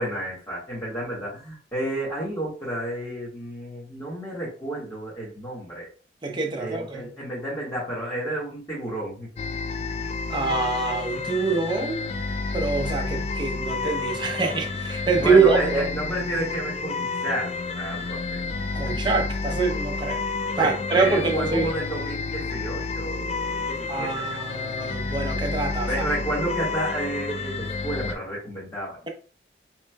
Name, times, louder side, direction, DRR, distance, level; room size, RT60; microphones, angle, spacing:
voice 1, 0.0-5.9 6.6-9.3 15.2-18.4 20.6-24.3 24.5-24.6 25.8-29.0, right 1 dB, 20° left, 1.4 m, -31 dB
voice 2, 6.2-7.1 10.3-12.1 12.5-15.9 18.7-20.2 20.5-21.7 23.9-26.0, right 4 dB, 25° right, 0.7 m, -24 dB
sound 1, 9.4-28.1, left 4 dB, 35° left, 0.3 m, -30 dB
4.8 x 3.1 x 2.2 m
head